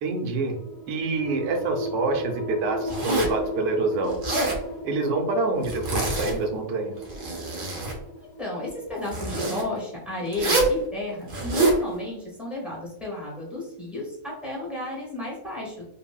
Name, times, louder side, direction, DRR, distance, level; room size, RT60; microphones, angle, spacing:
voice 1, 0.0-0.6 0.9-4.2 4.8-7.0, right 3 dB, 80° right, 4 dB, 1.1 m, -26 dB
sound 1, 0.5-11.7, equal, 40° left, 0.7 m, -37 dB
Zipper (clothing), 2.9-3.4 4.1-4.6 5.6-6.4 7.0-8.0 9.0-9.6 10.3-10.8 11.3-11.8, right 2 dB, 60° right, 0.5 m, -25 dB
voice 2, 8.4-15.8, left 2 dB, ahead, -5 dB, 0.3 m, -33 dB
3.6 x 2.0 x 2.2 m, 0.79 s
omnidirectional pair, 1.6 m